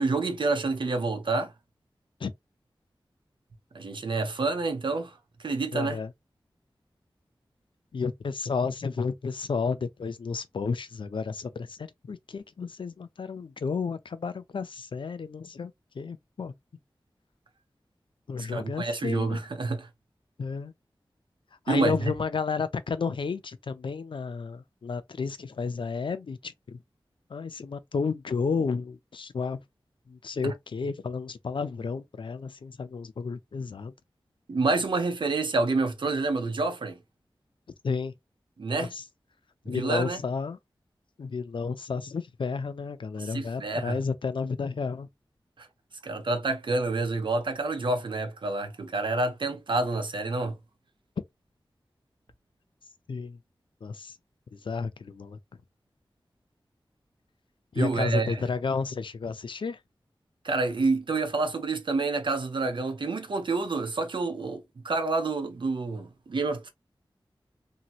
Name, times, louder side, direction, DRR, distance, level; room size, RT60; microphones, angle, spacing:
voice 1, 0.0-1.5 3.7-6.0 18.5-19.9 21.7-22.1 30.4-30.5 34.5-37.0 38.6-38.9 39.7-40.2 43.2-44.0 45.6-45.7 46.0-50.5 57.7-58.5 60.4-66.7, right 3 dB, 65° right, 0.7 m, -28 dB
voice 2, 5.7-6.1 7.9-16.5 18.3-19.4 20.4-20.7 21.7-26.8 27.3-29.6 30.1-33.9 37.8-38.1 38.9-39.0 39.7-40.6 41.2-45.1 53.1-53.4 53.8-54.2 54.5-55.4 57.7-59.8, left 5 dB, 65° left, 0.4 m, -32 dB
2.9 x 2.7 x 2.4 m
wide cardioid pair, 70°, 9 cm